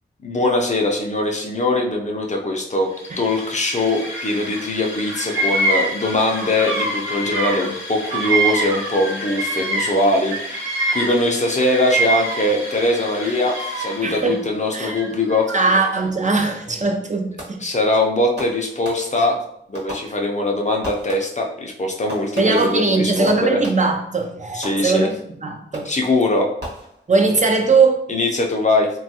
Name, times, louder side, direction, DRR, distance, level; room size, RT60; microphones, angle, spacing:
voice 1, 0.2-2.9 3.2-15.5 17.6-19.4 19.7-23.6 24.5-25.1 25.8-26.5 28.1-28.9, left 2 dB, 35° left, 1 dB, 0.5 m, -21 dB
sound 1, 2.8-14.6, left 2 dB, 75° left, 0.6 m, -35 dB
Bird vocalization bird call bird song, 3.9-4.7 4.9-10.0 10.3-12.7 13.1-14.1 14.8-15.9, right 2 dB, 85° right, 0.8 m, -25 dB
voice 2, 14.0-14.4 14.7-15.0 15.5-17.6 22.4-25.9 27.1-28.0, right 4 dB, 40° right, 3 dB, 0.4 m, -20 dB
Fireworks, 17.4-17.8 18.4-19.4 19.7-20.5 20.8-21.5 22.1-24.1 24.6-25.3 25.7-26.1 26.6-27.4, equal, 55° right, 1.0 m, -37 dB
3.2 x 2.2 x 2.7 m, 0.71 s
wide cardioid pair, 75°, 20 cm